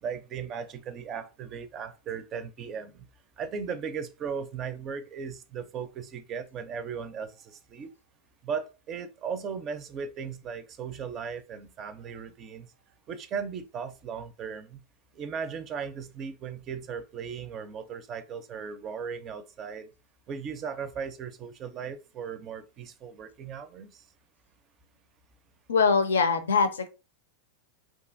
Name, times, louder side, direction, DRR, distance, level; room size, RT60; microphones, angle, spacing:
voice 1, 0.0-3.1 3.4-7.9 8.4-12.7 13.1-14.8 15.2-19.9 20.3-24.0, right 6 dB, 35° right, 0.4 m, -37 dB
voice 2, 25.7-26.9, left 5 dB, 90° left, 0.4 m, -23 dB
2.8 x 2.3 x 2.5 m
hypercardioid pair, 110°, 0 cm